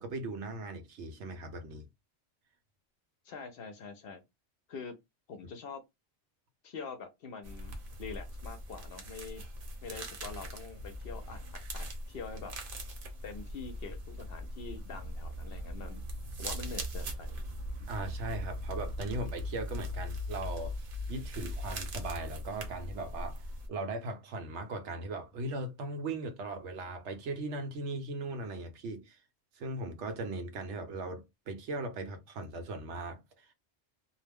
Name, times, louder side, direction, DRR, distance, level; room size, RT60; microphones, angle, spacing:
voice 1, 0.0-1.8 17.8-20.8 21.1-23.4 23.7-29.2 29.6-33.5, right 2 dB, 80° right, 1.0 m, -38 dB
voice 2, 3.2-4.2 4.7-4.9 5.3-5.8 6.6-9.4 9.8-12.6 13.2-16.1 16.4-17.3, left 5 dB, 60° left, 0.7 m, -45 dB
sound 1, 7.4-23.7, equal, 55° right, 0.9 m, -40 dB
2.4 x 2.0 x 3.4 m
omnidirectional pair, 1.2 m